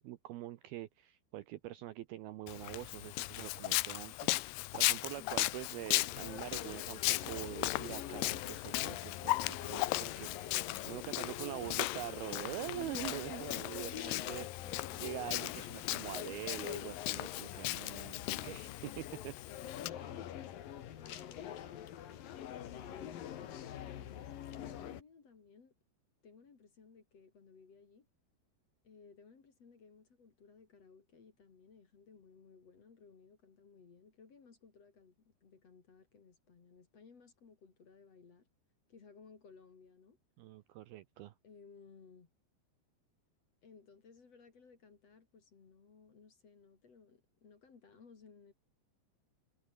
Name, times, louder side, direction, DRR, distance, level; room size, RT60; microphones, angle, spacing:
voice 1, 0.0-14.5 15.0-19.3 40.4-41.3, right 15 dB, 75° right, 2.4 m, -45 dB
Walk footsteps, 2.5-19.9, left 20 dB, 80° left, 2.4 m, -37 dB
sound 1, 5.3-25.0, left 11 dB, 60° left, 3.1 m, -45 dB
voice 2, 13.8-15.1 15.6-15.9 19.8-20.4 21.0-22.2 22.5-25.7 26.2-28.1 28.8-38.5 38.9-40.2 41.4-42.3 43.6-48.5, left 5 dB, 40° left, 3.5 m, -59 dB
omnidirectional pair, 5.2 m